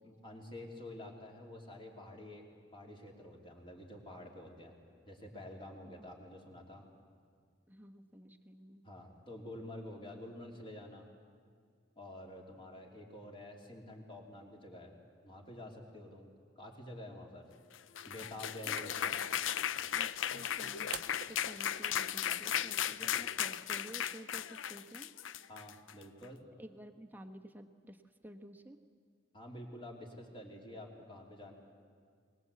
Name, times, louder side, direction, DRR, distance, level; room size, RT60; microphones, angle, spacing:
voice 1, 0.0-4.8 5.0-6.9 8.8-11.0 12.0-15.0 15.2-16.3 16.6-17.5 18.0-19.2 25.5-26.4 29.3-31.5, left 1 dB, 25° left, 0 dB, 3.0 m, -49 dB
voice 2, 7.7-8.9 18.6-18.8 19.9-25.1 26.6-28.8, right 1 dB, 10° right, 4 dB, 1.1 m, -52 dB
sound 1, 17.7-26.0, left 10 dB, 80° left, 0.5 m, -36 dB
sound 2, 18.1-23.1, right 9 dB, 50° right, 0.6 m, -52 dB
22.5 x 19.5 x 8.4 m, 2.1 s
head